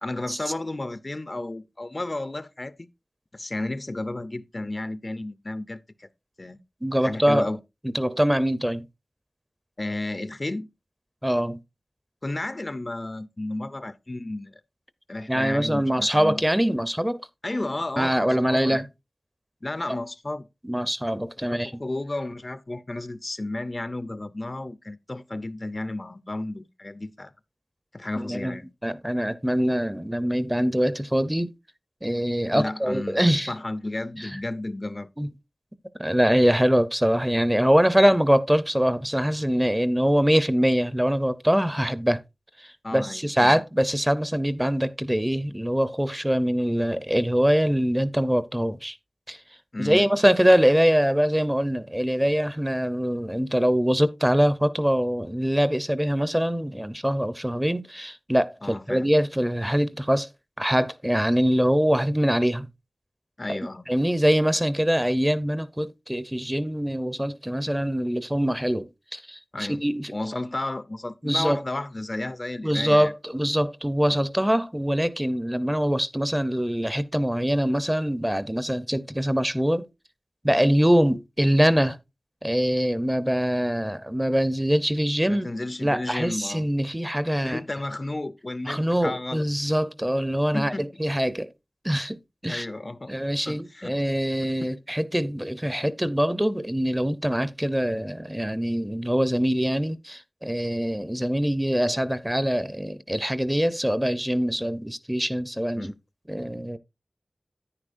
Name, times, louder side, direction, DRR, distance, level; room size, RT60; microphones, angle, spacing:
voice 1, 0.0-2.9 3.3-6.1 6.4-6.6 7.0-7.6 9.8-10.7 12.2-14.6 15.1-16.4 17.4-18.8 19.6-20.5 21.5-27.3 27.9-28.7 32.5-33.2 33.5-35.1 42.8-43.6 49.7-50.1 58.6-59.1 63.4-63.9 69.5-69.8 70.1-73.1 85.3-86.7 87.4-89.4 90.5-90.8 92.5-93.1 93.5-93.9 94.6-94.7 105.7-105.9, left 2 dB, 40° left, 0.6 m, -32 dB
voice 2, 6.8-7.5 7.9-8.9 11.2-11.6 15.3-17.2 18.0-18.8 20.6-21.7 28.2-31.5 32.0-33.5 34.2-34.3 35.2-35.3 36.0-42.2 42.6-49.0 49.3-49.4 49.8-60.3 60.6-62.7 63.5-63.6 63.9-70.2 71.2-71.6 72.6-79.9 80.4-82.0 82.4-85.5 85.8-87.6 88.7-91.5 91.8-92.7 93.1-105.9 106.3-106.8, equal, 10° right, 0.7 m, -23 dB
9.9 x 9.8 x 2.5 m
wide cardioid pair, 70°, 0 cm